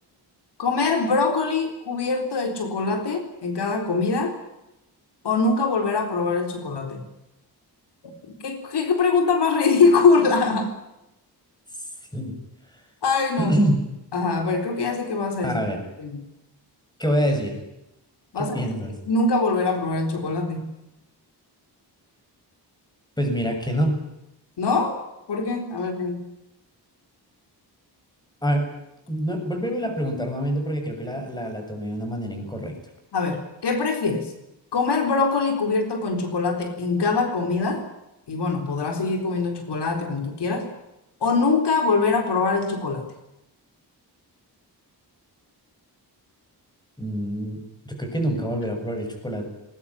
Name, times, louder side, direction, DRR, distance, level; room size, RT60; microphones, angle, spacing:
voice 1, 0.6-4.4 5.2-7.0 8.2-10.8 13.0-13.5 14.1-15.6 16.0-16.2 18.3-18.7 19.1-20.7 24.6-25.0 25.3-26.2 33.1-34.3 34.7-37.8 38.3-40.7 41.2-43.1, left 4 dB, 75° left, 5 dB, 4.0 m, -23 dB
voice 2, 13.4-13.8 15.4-15.8 17.0-17.6 18.4-18.9 23.2-24.0 28.4-28.7 29.1-32.8 47.0-47.6 47.9-49.5, equal, 10° left, 4 dB, 7.1 m, -26 dB
21.5 x 20.5 x 10.0 m, 0.90 s
wide cardioid pair, 130°, 41 cm